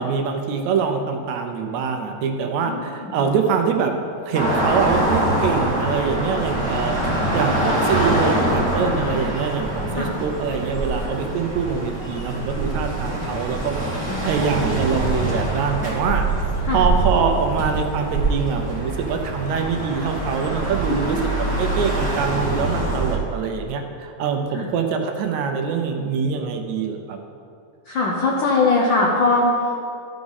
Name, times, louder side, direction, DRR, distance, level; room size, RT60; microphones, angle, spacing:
voice 1, 0.0-6.9 7.3-13.8 14.2-16.3 16.7-21.3 21.6-27.2, right 6 dB, 80° right, 4 dB, 2.0 m, -24 dB
voice 2, 2.6-3.3 10.0-10.1 14.1-14.4 16.7-16.8 20.9-21.6 24.5-24.7 27.9-29.8, left 3 dB, 85° left, -2 dB, 1.0 m, -22 dB
sound 1, 4.3-23.2, right 2 dB, 5° left, 1.6 m, -24 dB
14.0 x 4.9 x 4.0 m, 2.4 s
omnidirectional pair, 3.3 m